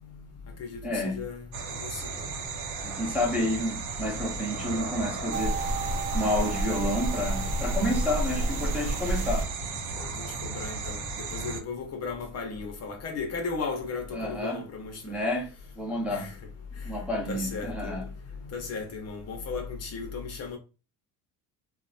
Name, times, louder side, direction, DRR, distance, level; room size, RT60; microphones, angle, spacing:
voice 1, 0.1-2.1 4.9-5.1 10.1-15.1 15.9-16.4 16.8-17.0 17.3-18.1 18.4-20.6, left 4 dB, 35° left, 0.6 m, -36 dB
voice 2, 0.8-1.2 2.8-5.6 6.1-9.5 14.1-14.6 15.0-16.3 16.7-18.1, left 1 dB, 5° right, 0.6 m, -30 dB
sound 1, 1.5-11.6, right 4 dB, 60° right, 0.8 m, -35 dB
sound 2, 5.3-9.5, right 2 dB, 85° right, 0.7 m, -30 dB
3.0 x 2.1 x 2.5 m
supercardioid pair, 100°, 43 cm